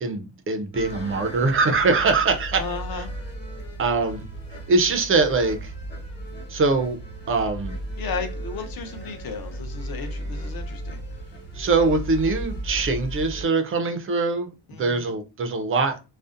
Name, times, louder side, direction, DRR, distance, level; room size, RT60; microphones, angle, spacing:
voice 1, 0.0-3.0 3.8-4.3 4.7-5.7 6.5-7.0 7.3-7.8 11.5-14.5 14.8-16.0, right 3 dB, 30° right, 0.4 m, -23 dB
sound 1, 0.7-13.5, right 1 dB, 20° left, 1.0 m, -35 dB
voice 2, 2.6-3.1 8.0-11.0 14.7-15.1, left 5 dB, 50° left, 0.6 m, -34 dB
2.5 x 2.1 x 2.4 m
cardioid pair, 110°, 48 cm